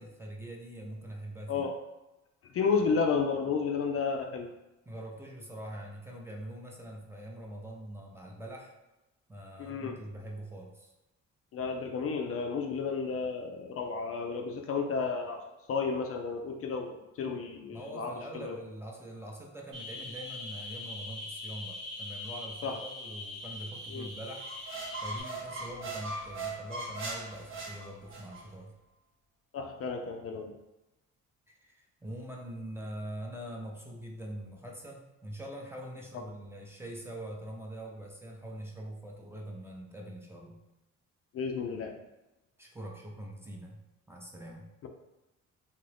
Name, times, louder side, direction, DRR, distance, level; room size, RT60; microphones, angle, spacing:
voice 1, 0.0-1.7 4.9-8.7 9.3-10.9 17.7-24.5 25.0-28.7 31.5-40.6 42.6-44.7, right 1 dB, 10° right, -1 dB, 0.6 m, -43 dB
voice 2, 2.5-4.5 9.6-10.0 11.5-15.4 15.7-18.6 22.6-22.8 23.9-24.1 29.5-30.5 41.3-41.9 44.8-44.9, left 5 dB, 50° left, 3 dB, 0.4 m, -32 dB
sound 1, 19.7-25.2, left 2 dB, 80° right, 1.1 m, -42 dB
sound 2, 24.4-28.4, right 2 dB, 45° right, 0.7 m, -39 dB
2.8 x 2.5 x 3.3 m, 0.98 s
cardioid pair, 90°, 30 cm